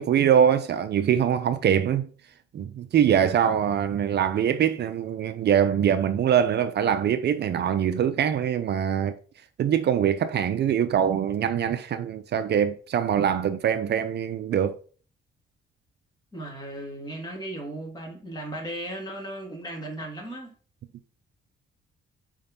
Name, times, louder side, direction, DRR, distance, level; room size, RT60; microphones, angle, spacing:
voice 1, 0.0-2.1 2.5-9.1 9.6-14.8, right 9 dB, 55° right, 0.6 m, -23 dB
voice 2, 16.3-20.5, right 1 dB, 20° left, 2.7 m, -36 dB
5.3 x 3.7 x 5.3 m
cardioid pair, 90°, 20 cm